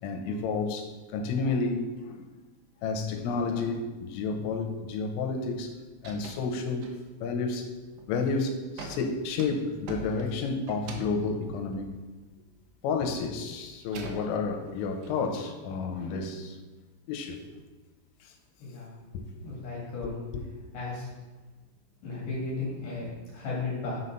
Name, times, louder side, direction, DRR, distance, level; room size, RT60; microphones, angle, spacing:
voice 1, 0.0-2.3 2.8-5.8 6.0-6.9 7.2-11.9 12.8-16.6 17.1-17.5 18.2-18.3 19.1-19.3 20.0-20.4, left 4 dB, 90° left, 3.4 m, -31 dB
sound 1, 5.4-5.7 5.9-6.5 6.8-7.3 7.8-8.2 8.8-12.8 13.1-15.1, right 4 dB, 90° right, 2.2 m, -44 dB
voice 2, 18.6-18.9 19.4-20.2 20.7-21.1 22.0-24.0, left 3 dB, 55° left, 2.6 m, -35 dB
6.4 x 5.3 x 5.7 m
omnidirectional pair, 5.7 m